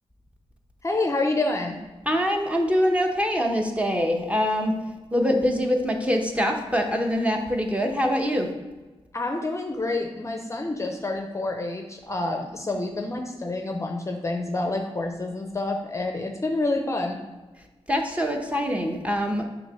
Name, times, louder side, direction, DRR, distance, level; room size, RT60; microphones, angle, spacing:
voice 1, 0.8-1.8 9.1-17.2, left 2 dB, 25° left, 3 dB, 0.6 m, -28 dB
voice 2, 2.1-4.7 5.1-8.5 17.9-19.4, equal, 10° right, 2 dB, 0.9 m, -24 dB
6.4 x 3.0 x 5.6 m, 1.2 s
wide cardioid pair, 95°, 11 cm